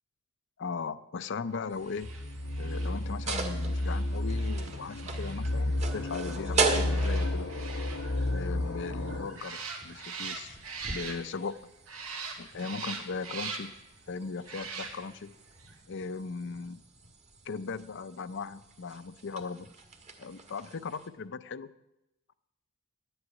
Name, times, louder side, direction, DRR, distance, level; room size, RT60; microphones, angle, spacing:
voice 1, 0.6-2.1 2.6-7.5 8.3-10.6 10.9-11.6 12.4-13.7 14.1-15.3 15.9-16.8 17.5-19.7 20.2-21.7, left 4 dB, 60° left, 15 dB, 0.5 m, -38 dB
sound 1, 1.7-21.1, right 3 dB, 30° right, 1.5 m, -39 dB
sound 2, 1.8-11.6 11.9-13.9 14.4-15.3 15.6-15.7, right 5 dB, 85° right, 1.9 m, -43 dB
sound 3, 2.0-9.2, left 1 dB, 85° left, 0.8 m, -32 dB
11.0 x 7.9 x 9.4 m, 0.92 s
head